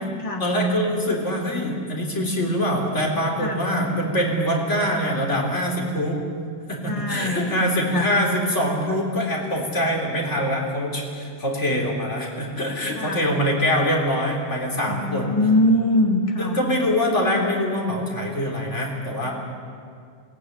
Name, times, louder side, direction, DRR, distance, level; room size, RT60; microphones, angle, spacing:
voice 1, 0.4-6.2 6.7-15.3 16.4-19.3, equal, 75° left, 0 dB, 4.1 m, -24 dB
voice 2, 6.9-8.1 13.0-13.3 14.8-16.6, left 1 dB, 25° left, 1 dB, 2.3 m, -23 dB
22.0 x 19.0 x 9.7 m, 2.2 s
omnidirectional pair, 1.2 m